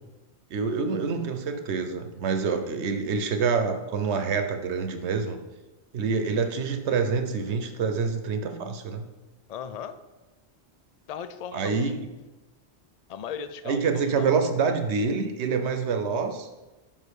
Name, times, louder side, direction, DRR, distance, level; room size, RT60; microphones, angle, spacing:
voice 1, 0.5-5.4 5.9-9.1 11.5-12.0 13.7-16.5, right 5 dB, 75° right, 7 dB, 1.1 m, -26 dB
voice 2, 9.5-10.0 11.1-11.9 13.1-14.5, left 7 dB, 50° left, 11 dB, 0.4 m, -37 dB
5.5 x 5.4 x 6.4 m, 1.1 s
omnidirectional pair, 1.1 m